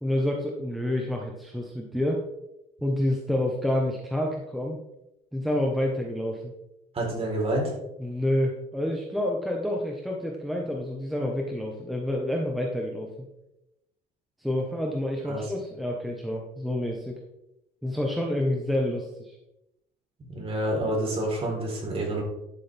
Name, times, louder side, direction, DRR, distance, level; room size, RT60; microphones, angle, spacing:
voice 1, 0.0-2.3 2.8-4.8 5.3-6.5 8.0-13.1 14.4-17.1 17.8-19.4, left 1 dB, ahead, -1 dB, 1.3 m, -28 dB
voice 2, 6.9-7.7 15.3-15.4 20.3-22.2, right 1 dB, 35° right, -2 dB, 4.1 m, -28 dB
12.0 x 6.8 x 3.6 m, 0.87 s
cardioid pair, 110°, 17 cm